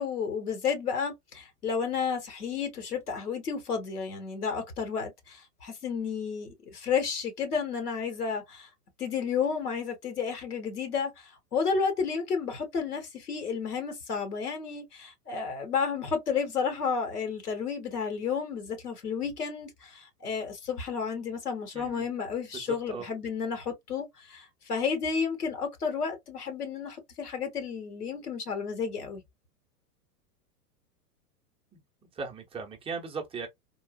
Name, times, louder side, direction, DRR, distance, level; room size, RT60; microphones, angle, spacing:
voice 1, 0.0-8.7 9.0-29.2, left 6 dB, 75° left, 1.3 m, -32 dB
voice 2, 21.7-22.1 22.5-23.1 31.7-33.5, right 5 dB, 10° right, 0.7 m, -38 dB
3.7 x 2.3 x 2.2 m
figure-of-eight pair, 100°, 46 cm